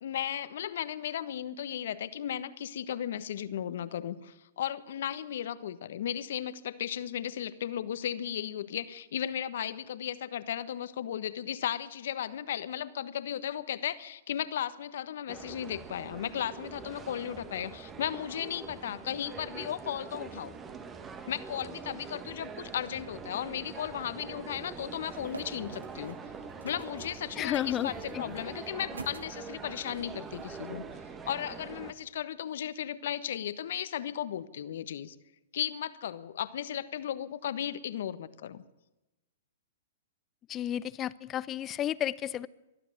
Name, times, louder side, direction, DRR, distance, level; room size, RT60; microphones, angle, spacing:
voice 1, 0.0-20.5 21.3-26.2 26.6-30.8 31.2-35.1 35.5-38.6, left 10 dB, 65° left, 13 dB, 1.3 m, -35 dB
sound 1, 15.3-31.9, right 5 dB, 20° right, 1.8 m, -44 dB
sound 2, 25.1-30.6, right 3 dB, 85° right, 2.1 m, -49 dB
voice 2, 27.4-28.3 40.5-42.5, left 11 dB, 25° left, 18 dB, 0.7 m, -32 dB
23.0 x 12.5 x 9.0 m, 1.0 s
hypercardioid pair, 120°, 0 cm